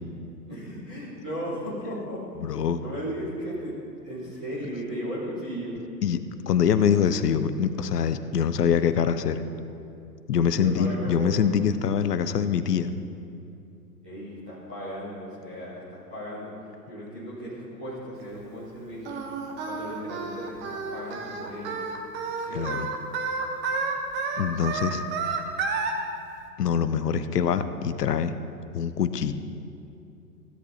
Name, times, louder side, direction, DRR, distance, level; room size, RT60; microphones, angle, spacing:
voice 1, 0.5-3.7 4.0-5.8 10.5-11.4 14.0-19.2 19.6-21.9 22.3-22.9 24.7-25.0, equal, 5° right, -14 dB, 0.3 m, -36 dB
voice 2, 2.4-2.8 6.0-9.4 10.3-12.9 22.5-22.9 24.4-25.0 26.6-28.3 28.7-29.3, left 7 dB, 70° left, 12 dB, 0.8 m, -24 dB
Singing, 19.0-25.9, right 4 dB, 20° right, 0.9 m, -31 dB
16.5 x 10.5 x 2.8 m, 2.7 s
figure-of-eight pair, 115°, 50 cm